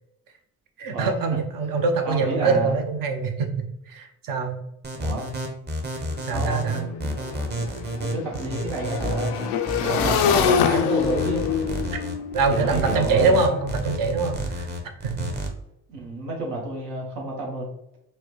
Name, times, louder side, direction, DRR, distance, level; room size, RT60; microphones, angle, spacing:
voice 1, 0.8-4.6 6.2-6.8 12.3-14.7 15.0-15.3, right 4 dB, 55° right, 6 dB, 0.8 m, -24 dB
voice 2, 2.0-2.8 5.0-5.3 6.3-7.2 7.5-9.3 9.8-11.5 12.5-13.5 15.9-17.7, right 2 dB, 75° right, -1 dB, 1.3 m, -30 dB
sound 1, 4.8-15.5, equal, 25° right, 0.9 m, -31 dB
Motorcycle / Engine, 6.1-6.2 6.5-13.6, left 8 dB, 75° left, 0.5 m, -26 dB
4.6 x 2.1 x 2.9 m, 0.79 s
hypercardioid pair, 55°, 41 cm